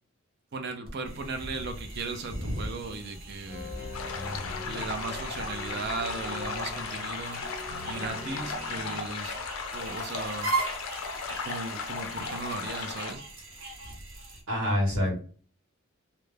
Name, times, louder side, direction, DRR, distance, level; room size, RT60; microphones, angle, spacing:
voice 1, 0.5-3.9 4.2-7.5 7.8-9.4 9.7-10.7 11.4-13.2, right 3 dB, 50° right, 0.4 m, -37 dB
sound 1, 0.9-14.4, right 2 dB, 65° right, 0.8 m, -39 dB
sound 2, 3.5-9.0, left 3 dB, 35° left, 0.5 m, -44 dB
sound 3, 3.9-13.1, left 4 dB, 80° left, 0.5 m, -36 dB
voice 2, 4.1-4.8 14.5-15.2, left 1 dB, 90° right, 1.1 m, -29 dB
2.3 x 2.1 x 3.2 m
head